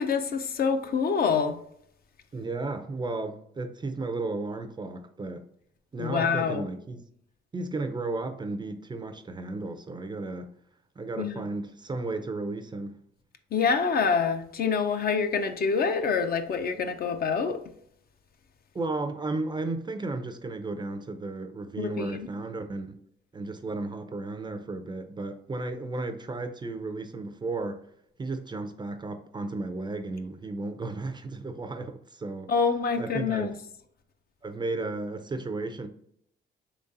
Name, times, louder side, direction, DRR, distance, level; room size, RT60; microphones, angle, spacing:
voice 1, 0.0-1.6 6.0-6.6 11.2-11.5 13.5-17.6 21.8-22.3 32.5-33.5, left 5 dB, 50° left, 0.5 m, -26 dB
voice 2, 2.3-5.5 5.9-7.0 7.5-10.5 11.0-13.0 18.7-22.9 23.3-27.8 28.2-32.5 33.0-33.5 34.4-35.9, right 2 dB, 20° right, 0.4 m, -34 dB
3.9 x 3.1 x 2.5 m
cardioid pair, 90°, 20 cm